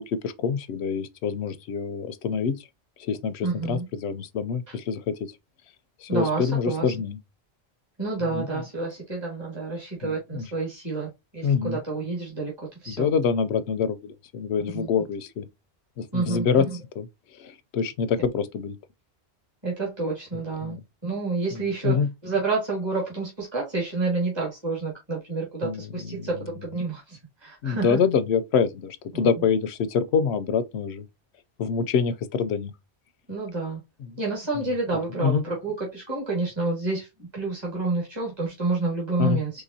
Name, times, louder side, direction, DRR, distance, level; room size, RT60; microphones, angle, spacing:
voice 1, 0.0-2.6 3.0-5.3 6.0-7.2 8.3-8.4 10.0-10.4 11.4-11.8 12.9-15.5 16.0-16.7 17.0-17.1 17.4-18.8 20.6-20.8 21.5-22.1 25.6-25.8 26.1-26.3 27.6-31.0 31.6-32.7 35.2-35.4 39.2-39.4, left 6 dB, 80° left, 0.9 m, -26 dB
voice 2, 3.4-3.9 4.7-4.8 6.1-6.9 8.0-13.1 14.7-14.9 16.1-16.8 19.6-20.8 21.0-28.0 29.1-29.3 33.3-33.8 34.2-37.1 37.3-39.6, right 3 dB, 25° right, 1.8 m, -29 dB
4.9 x 3.3 x 2.7 m
omnidirectional pair, 1.1 m